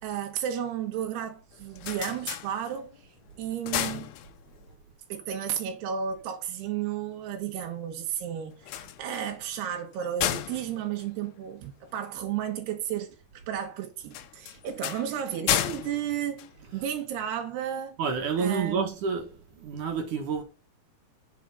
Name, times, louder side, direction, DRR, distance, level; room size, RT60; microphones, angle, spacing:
voice 1, 0.0-2.9 3.4-4.1 5.1-18.0 18.4-19.0, right 9 dB, 85° right, 3.6 m, -33 dB
sound 1, 1.5-3.0 3.4-4.7 8.5-12.0 14.1-17.1, left 12 dB, 80° left, 2.8 m, -33 dB
voice 2, 18.0-20.4, right 5 dB, 60° right, 2.9 m, -29 dB
9.2 x 6.7 x 5.5 m
omnidirectional pair, 4.6 m